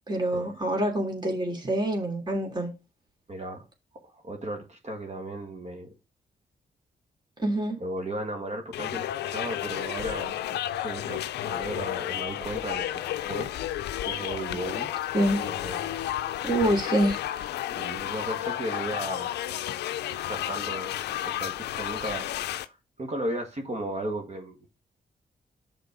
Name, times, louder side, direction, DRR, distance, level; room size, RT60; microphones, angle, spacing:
voice 1, 0.1-2.7 7.4-7.8 15.1-15.4 16.4-17.2, right 1 dB, 25° right, 2.9 m, -26 dB
voice 2, 3.3-3.6 4.1-5.9 7.8-13.5 14.0-14.9 15.4-15.9 17.7-19.7 20.1-22.3 22.6-22.7 23.0-24.8, right 1 dB, 40° right, 2.1 m, -36 dB
sound 1, 8.7-22.7, left 12 dB, 85° left, 0.5 m, -32 dB
6.6 x 4.4 x 6.2 m
supercardioid pair, 50°, 17 cm